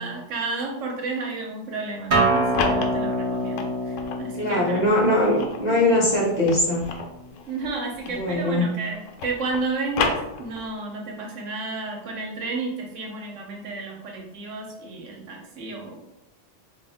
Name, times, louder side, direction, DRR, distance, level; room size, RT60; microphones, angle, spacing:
voice 1, 0.0-4.8 5.7-5.8 7.5-16.0, right 3 dB, 80° right, 0 dB, 1.1 m, -32 dB
Acoustic guitar, 2.1-7.3, right 1 dB, 50° right, 0.9 m, -27 dB
sound 1, 2.2-4.3 4.8-8.6 8.8-10.8, left 4 dB, 90° left, 0.9 m, -31 dB
voice 2, 4.4-6.8 8.1-8.7, left 1 dB, 45° left, -3 dB, 0.6 m, -21 dB
3.6 x 2.4 x 3.4 m, 0.86 s
omnidirectional pair, 1.3 m